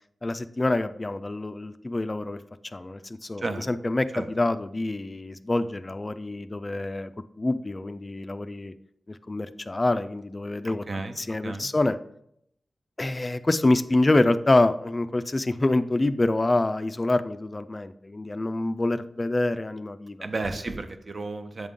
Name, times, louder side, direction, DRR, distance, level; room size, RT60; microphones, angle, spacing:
voice 1, 0.2-2.4 2.7-7.1 7.4-8.7 9.3-10.8 11.2-12.0 13.0-20.2, left 2 dB, 35° left, 12 dB, 0.3 m, -26 dB
voice 2, 10.6-11.2 11.4-11.7 20.2-21.7, right 3 dB, 55° right, 8 dB, 0.6 m, -33 dB
7.4 x 3.7 x 3.6 m, 0.74 s
cardioid pair, 50°, 0 cm